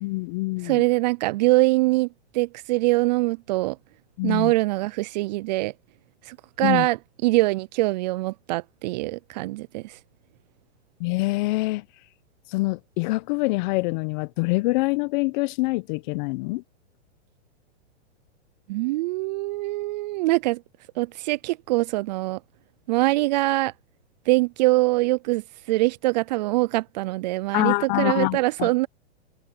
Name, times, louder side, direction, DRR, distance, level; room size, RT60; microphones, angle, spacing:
voice 1, 0.0-0.8 4.2-4.5 6.6-6.9 11.0-11.8 12.5-16.6 27.5-28.7, left 23 dB, 40° left, 1.2 m, -25 dB
voice 2, 0.6-2.1 2.3-3.8 4.2-5.7 6.3-7.0 7.2-9.9 18.7-20.6 21.0-22.4 22.9-23.7 24.3-25.4 25.7-28.9, right 21 dB, 40° right, 0.5 m, -23 dB
open air
hypercardioid pair, 130°, 35 cm